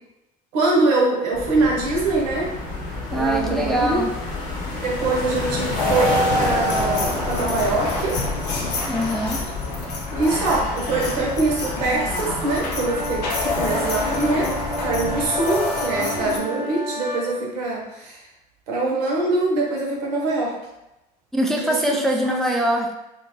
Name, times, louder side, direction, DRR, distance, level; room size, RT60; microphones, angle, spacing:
voice 1, 0.5-2.5 3.1-4.0 4.8-8.2 10.1-14.5 14.8-18.2 18.7-20.6 21.5-22.3, right 2 dB, 75° right, -3 dB, 0.8 m, -23 dB
sound 1, 1.3-15.3, left 2 dB, 55° left, 0.9 m, -31 dB
voice 2, 3.1-4.1 8.9-9.4 21.3-22.9, right 1 dB, ahead, 0 dB, 0.4 m, -23 dB
sound 2, 5.8-16.4, left 2 dB, 85° left, 0.6 m, -27 dB
sound 3, 12.8-17.3, right 1 dB, 15° right, 0.7 m, -32 dB
2.7 x 2.1 x 3.0 m, 0.95 s
hypercardioid pair, 65°, 21 cm